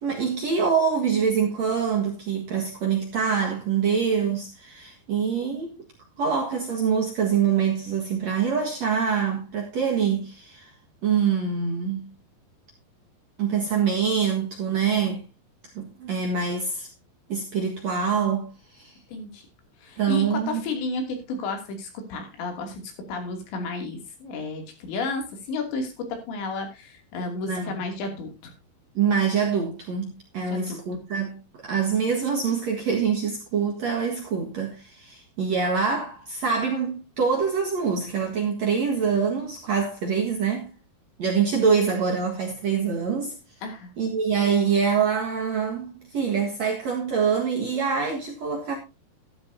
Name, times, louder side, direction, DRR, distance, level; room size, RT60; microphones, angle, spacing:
voice 1, 0.0-5.8 6.2-10.7 11.0-12.1 13.4-15.2 15.8-16.9 17.3-19.0 20.0-20.6 27.3-27.7 28.9-40.7 41.2-43.3 44.0-48.7, right 6 dB, 55° right, 2.2 m, -25 dB
voice 2, 19.1-19.4 19.8-28.5 30.5-30.8 43.6-43.9, left 3 dB, 90° left, 5.0 m, -32 dB
13.5 x 12.5 x 2.7 m
omnidirectional pair, 4.9 m